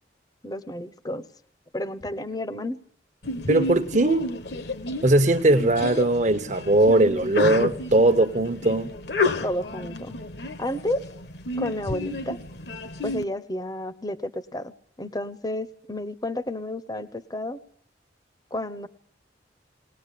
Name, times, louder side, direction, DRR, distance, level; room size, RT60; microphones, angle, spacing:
voice 1, 0.4-1.3 1.7-2.8 9.4-10.2 10.6-11.1 11.6-12.4 13.0-17.6 18.5-18.9, left 1 dB, 20° left, 0.8 m, -31 dB
Sneeze, 3.2-13.2, left 2 dB, 60° left, 1.2 m, -31 dB
voice 2, 3.5-4.3 5.0-8.9, right 2 dB, 40° right, 1.0 m, -20 dB
20.0 x 20.0 x 8.4 m
head